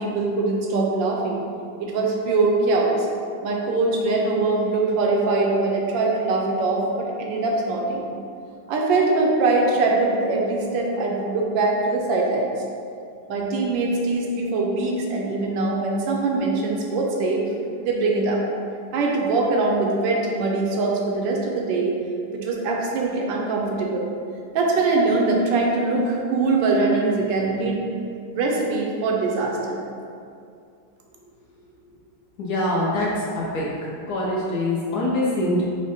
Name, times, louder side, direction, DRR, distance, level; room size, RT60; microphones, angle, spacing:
voice 1, 0.0-1.4 1.8-3.1 3.4-8.0 8.7-12.5 13.3-17.5 17.8-18.4 18.9-22.0 22.3-24.1 24.5-27.8 28.3-29.8, right 3 dB, 80° right, -1 dB, 1.3 m, -22 dB
voice 2, 32.4-33.2 33.5-35.6, left 1 dB, 65° left, -6 dB, 1.1 m, -24 dB
4.8 x 2.1 x 4.1 m, 2.4 s
omnidirectional pair, 2.1 m